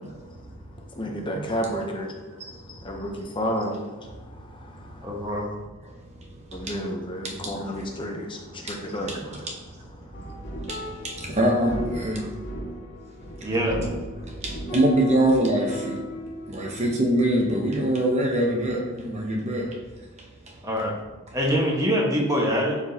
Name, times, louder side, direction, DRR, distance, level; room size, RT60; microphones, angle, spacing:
voice 1, 0.0-0.3 1.9-2.0 2.3-2.8 6.1-6.8 7.2-7.9 8.7-9.7 10.6-12.2 13.4-13.5 14.2-16.0 16.5-19.8 20.2-20.5, right 1 dB, 30° right, 0 dB, 0.8 m, -25 dB
voice 2, 1.0-2.1 2.7-5.0 6.5-9.2, equal, 20° left, 1 dB, 0.7 m, -31 dB
voice 3, 5.0-5.5 13.4-13.8 20.6-20.9 21.3-22.8, equal, 15° right, -1 dB, 1.3 m, -24 dB
sound 1, 10.1-17.8 18.1-18.2, equal, 50° left, 1.5 m, -36 dB
11.0 x 4.9 x 2.8 m, 1.3 s
head